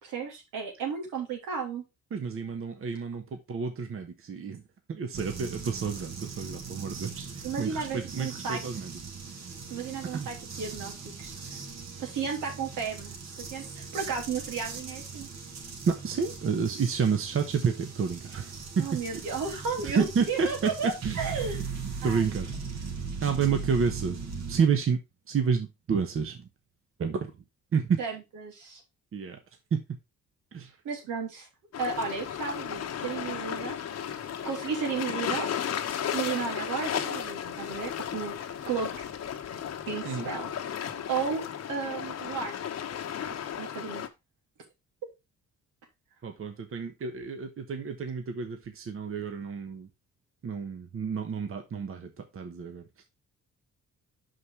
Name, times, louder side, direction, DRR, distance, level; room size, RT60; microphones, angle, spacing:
voice 1, 0.0-1.8 7.4-8.6 9.7-11.3 12.0-15.3 18.8-21.6 22.0-22.2 28.0-28.8 30.8-31.5 31.8-33.8 34.4-35.5 36.1-39.1 39.9-40.5 41.1-41.4 41.7-42.5 43.6-44.0, right 5 dB, 85° right, 3.0 m, -33 dB
voice 2, 2.1-4.6 4.9-8.9 10.1-10.3 15.8-19.4 19.8-21.3 22.0-22.5 23.2-24.2 24.5-25.0 25.3-26.5 27.0-27.3 27.7-28.0 29.1-29.4 29.7-29.8 30.5-30.7 40.0-40.3 46.2-49.9 50.4-52.9, right 6 dB, 45° right, 1.2 m, -30 dB
sound 1, 5.1-24.6, right 5 dB, 60° right, 2.1 m, -39 dB
sound 2, 31.7-44.1, left 9 dB, 55° left, 1.1 m, -34 dB
5.8 x 5.2 x 4.8 m
cardioid pair, 90°, 30 cm